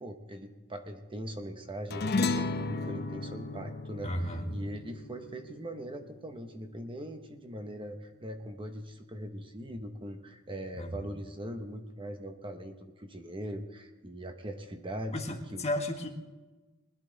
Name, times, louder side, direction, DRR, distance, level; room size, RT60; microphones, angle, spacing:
voice 1, 0.0-15.2 15.5-15.7, right 1 dB, 25° right, 6 dB, 0.9 m, -41 dB
sound 1, 1.9-6.6, left 3 dB, 50° left, 0.7 m, -34 dB
voice 2, 4.0-4.5 10.8-11.1 15.1-16.1, left 1 dB, 30° left, 3 dB, 1.5 m, -34 dB
21.0 x 11.5 x 3.9 m, 1.2 s
head